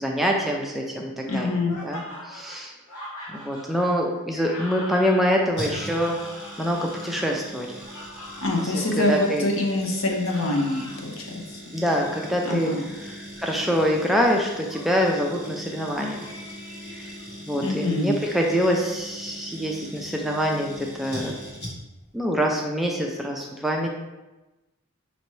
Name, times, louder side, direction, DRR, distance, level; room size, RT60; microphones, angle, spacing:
voice 1, 0.0-1.5 1.8-2.7 3.3-6.2 6.6-7.7 8.6-9.5 11.7-16.3 16.8-17.1 17.4-21.4 22.1-23.9, equal, ahead, 0 dB, 0.3 m, -25 dB
sound 1, 1.3-9.1 10.1-11.0 11.7-12.5 13.3-14.0 14.7-15.2 16.1-17.3, equal, 85° left, 1.2 m, -42 dB
voice 2, 1.3-1.7 8.4-11.6 12.4-12.9 17.6-18.1, left 2 dB, 65° left, 1 dB, 0.8 m, -25 dB
sound 2, 5.6-22.1 22.3-22.4, equal, 50° left, 1.4 m, -40 dB
5.5 x 2.9 x 3.1 m, 1.1 s
head